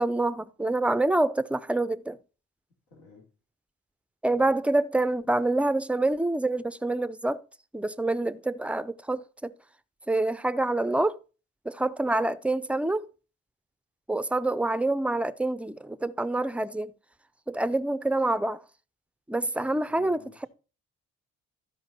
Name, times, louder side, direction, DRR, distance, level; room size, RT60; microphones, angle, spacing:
voice 1, 0.0-2.2 4.2-7.4 7.7-9.5 10.1-11.2 11.7-13.1 14.1-16.9 17.5-18.6 19.3-20.5, right 2 dB, 5° right, 0.4 m, -26 dB
voice 2, 2.9-3.3 4.3-4.6 19.6-20.5, left 3 dB, 90° left, 3.3 m, -52 dB
13.0 x 5.2 x 4.2 m
cardioid pair, 90°, 30 cm